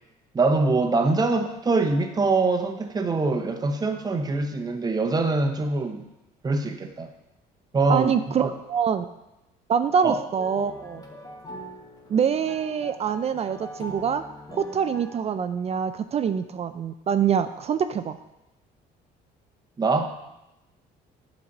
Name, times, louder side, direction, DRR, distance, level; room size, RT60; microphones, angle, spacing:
voice 1, 0.3-6.1 6.4-7.1 7.7-8.5 10.0-10.2 19.8-20.1, right 3 dB, 25° right, 5 dB, 0.9 m, -24 dB
voice 2, 7.9-8.4 8.7-9.1 9.7-11.0 12.1-14.2 14.5-18.2, right 7 dB, 40° right, 10 dB, 0.4 m, -25 dB
sound 1, 10.4-15.3, equal, 20° left, 1.2 m, -42 dB
8.3 x 4.1 x 5.9 m, 0.93 s
cardioid pair, 110°, 17 cm